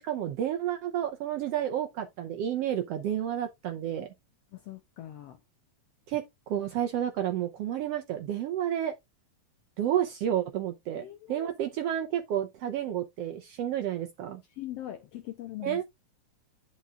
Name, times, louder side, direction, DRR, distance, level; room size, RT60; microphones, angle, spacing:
voice 1, 0.0-4.1 6.1-8.9 9.8-14.4 15.6-15.8, right 10 dB, 75° right, 1.5 m, -31 dB
voice 2, 4.5-5.4 11.0-11.5 14.5-15.8, left 14 dB, 80° left, 1.4 m, -41 dB
10.5 x 5.3 x 2.4 m
omnidirectional pair, 3.5 m